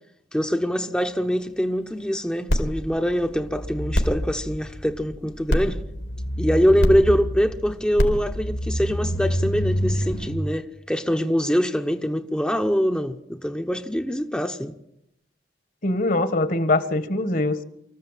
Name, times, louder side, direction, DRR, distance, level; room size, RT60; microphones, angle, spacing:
voice 1, 0.3-5.8 6.4-14.7, equal, 5° left, 0.9 m, -24 dB
sound 1, 2.5-10.3, equal, 85° left, 3.9 m, -26 dB
voice 2, 15.8-17.6, left 2 dB, 50° left, 1.6 m, -22 dB
25.5 x 14.5 x 9.1 m
head